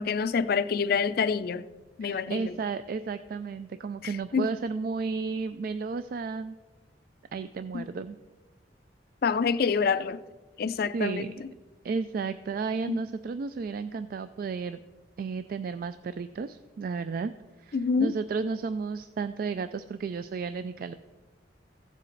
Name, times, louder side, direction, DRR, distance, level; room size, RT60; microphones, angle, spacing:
voice 1, 0.0-1.6 2.0-2.5 4.3-4.5 7.7-7.8 9.2-10.2 10.6-11.3 12.9-13.0 17.7-18.1, left 5 dB, 55° left, 0.4 m, -26 dB
voice 2, 2.0-6.6 7.3-8.2 10.8-11.3 11.8-14.8 15.2-17.3 17.6-20.9, right 4 dB, 50° right, 0.3 m, -33 dB
15.5 x 7.4 x 3.9 m
head